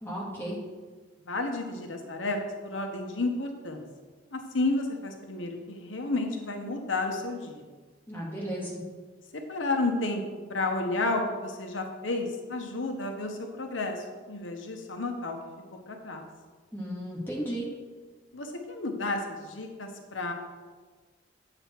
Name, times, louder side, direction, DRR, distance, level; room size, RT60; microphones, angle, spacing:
voice 1, 0.0-0.6 8.1-8.8 16.7-17.7, right 1 dB, 10° left, -5 dB, 2.0 m, -34 dB
voice 2, 1.3-3.8 4.3-7.6 9.3-15.4 15.9-16.3 18.3-20.3, left 2 dB, 90° left, 3 dB, 1.1 m, -31 dB
8.9 x 7.0 x 4.5 m, 1.4 s
head